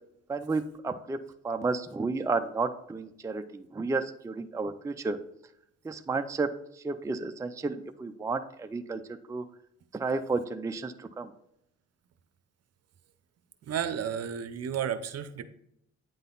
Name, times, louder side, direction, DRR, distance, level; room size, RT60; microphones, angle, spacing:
voice 1, 0.3-5.2 5.8-9.0 9.3-9.4 9.9-11.3, right 3 dB, 10° right, 7 dB, 0.4 m, -32 dB
voice 2, 13.7-15.4, right 8 dB, 55° right, 11 dB, 0.7 m, -32 dB
9.1 x 3.9 x 3.9 m, 0.75 s
cardioid pair, 90°, 30 cm